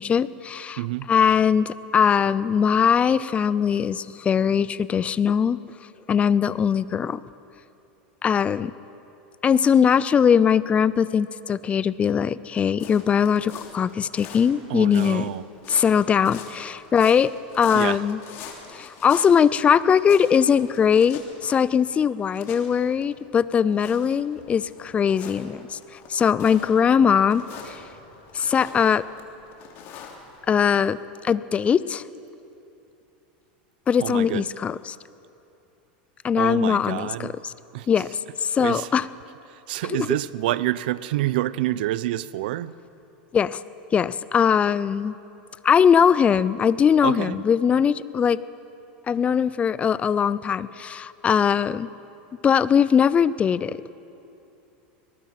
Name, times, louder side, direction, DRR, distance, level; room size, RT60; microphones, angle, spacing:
voice 1, 0.0-0.8 1.1-5.6 6.1-7.2 8.2-8.7 9.4-15.3 15.7-18.2 18.7-27.8 28.3-29.0 30.5-31.0 31.2-32.0 33.9-35.0 36.2-37.5 37.9-39.1 39.9-40.1 43.3-43.6 43.9-45.1 45.6-48.4 49.1-51.9 52.4-53.8, left 7 dB, 25° left, 0.5 m, -21 dB
voice 2, 0.8-1.1 14.7-15.4 17.7-18.0 34.0-34.5 36.4-37.3 37.7-37.9 38.6-38.9 39.5-42.7 47.0-47.4, right 15 dB, 75° right, 0.6 m, -27 dB
sound 1, 12.7-30.8, left 6 dB, 50° left, 3.0 m, -45 dB
23.0 x 19.5 x 5.9 m
supercardioid pair, 120°, 5 cm